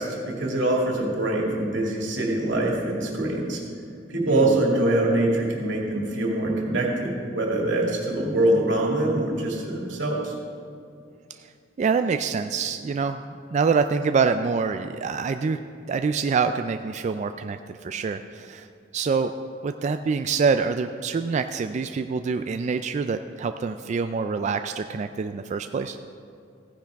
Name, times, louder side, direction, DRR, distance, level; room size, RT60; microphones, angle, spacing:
voice 1, 0.0-3.6 4.1-10.3, right 1 dB, 90° right, -2 dB, 2.3 m, -24 dB
voice 2, 11.8-13.2 13.5-15.6 15.9-18.7 18.9-19.3 19.6-26.0, right 5 dB, 40° right, 8 dB, 0.3 m, -25 dB
15.5 x 10.0 x 3.5 m, 2.4 s
head